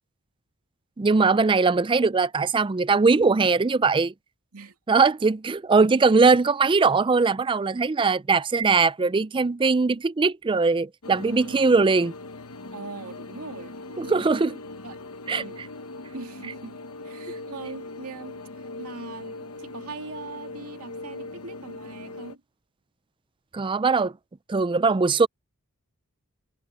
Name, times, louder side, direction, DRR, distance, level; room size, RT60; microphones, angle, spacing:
voice 1, 1.0-4.1 4.9-12.1 14.0-14.5 15.3-15.4 23.5-24.1 24.5-25.3, right 4 dB, 20° right, 0.4 m, -21 dB
voice 2, 4.5-5.0 12.7-14.2 14.8-15.0 15.3-15.6 16.1-22.4, right 3 dB, 90° right, 2.4 m, -41 dB
sound 1, 11.0-22.4, left 2 dB, 85° left, 1.1 m, -40 dB
head